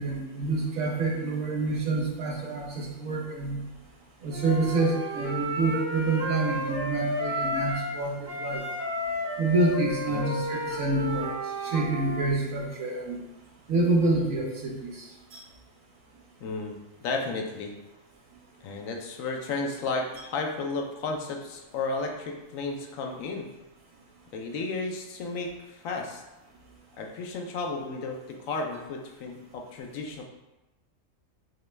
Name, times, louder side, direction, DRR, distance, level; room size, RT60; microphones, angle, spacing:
voice 1, 0.0-3.6 4.2-8.6 9.4-11.3 11.6-13.2 13.7-15.4, right 2 dB, 80° right, -2 dB, 1.3 m, -27 dB
Wind instrument woodwind instrument, 4.3-8.0 8.2-12.2, equal, 15° right, 0.8 m, -32 dB
voice 2, 16.4-17.7 18.6-23.5 24.3-26.2 27.0-30.2, left 3 dB, 85° left, 2 dB, 1.1 m, -33 dB
5.9 x 2.2 x 3.2 m, 1.0 s
omnidirectional pair, 1.4 m